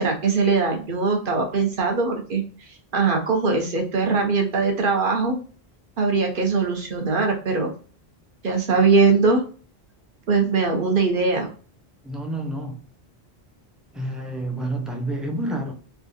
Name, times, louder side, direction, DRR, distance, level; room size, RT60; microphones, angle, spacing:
voice 1, 0.0-2.4 2.9-5.4 6.0-7.7 8.4-9.4 10.3-11.5, right 4 dB, 60° right, 0.9 m, -21 dB
voice 2, 12.0-12.8 13.9-15.7, right 1 dB, ahead, 0.4 m, -29 dB
3.5 x 2.4 x 2.6 m
omnidirectional pair, 1.1 m